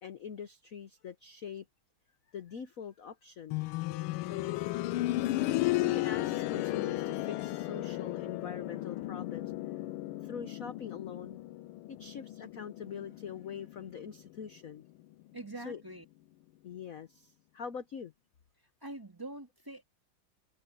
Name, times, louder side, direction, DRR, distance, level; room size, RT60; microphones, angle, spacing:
voice 1, 0.0-1.7 2.3-3.6 4.2-4.7 5.8-9.5 10.2-11.4 11.9-14.8 15.6-15.8 16.6-18.1, left 7 dB, 55° left, 1.0 m, -43 dB
sound 1, 3.5-14.3 15.6-15.7, left 17 dB, 85° left, 1.5 m, -34 dB
voice 2, 15.3-16.1 18.8-19.8, right 2 dB, 10° right, 1.9 m, -44 dB
omnidirectional pair, 2.4 m